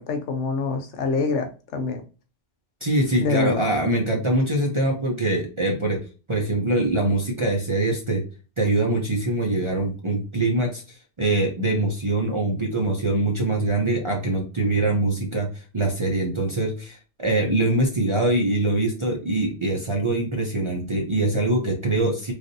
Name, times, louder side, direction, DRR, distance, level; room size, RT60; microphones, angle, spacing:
voice 1, 0.0-2.0 3.2-3.6, left 4 dB, 80° left, 5 dB, 1.0 m, -25 dB
voice 2, 2.8-6.0 6.3-8.2 8.6-10.8 11.2-22.3, right 2 dB, 35° right, -1 dB, 0.5 m, -23 dB
3.2 x 2.6 x 2.6 m, 0.34 s
omnidirectional pair, 1.2 m